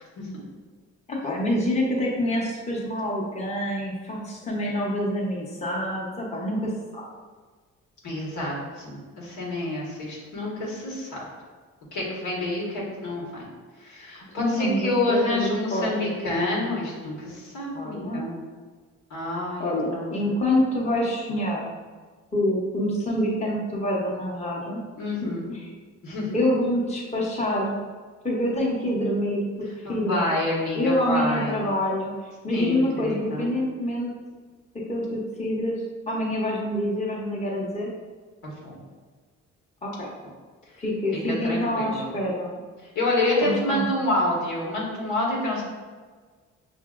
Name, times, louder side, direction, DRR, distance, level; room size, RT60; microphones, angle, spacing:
voice 1, 1.1-7.0 14.4-16.1 17.7-18.3 19.6-21.7 22.3-24.8 25.2-25.7 26.3-27.9 28.2-29.5 29.9-30.3 30.8-32.1 32.4-34.1 34.7-37.9 39.8-40.1 40.8-42.5 43.4-43.9, left 1 dB, 20° left, -3 dB, 0.9 m, -26 dB
voice 2, 8.0-11.2 11.9-13.5 13.8-18.3 19.1-20.1 25.0-25.5 26.0-26.3 29.8-31.7 32.5-33.5 38.4-38.8 41.3-42.1 42.9-45.6, left 2 dB, 85° left, -5 dB, 1.5 m, -28 dB
5.8 x 2.6 x 2.5 m, 1.4 s
cardioid pair, 90°, 30 cm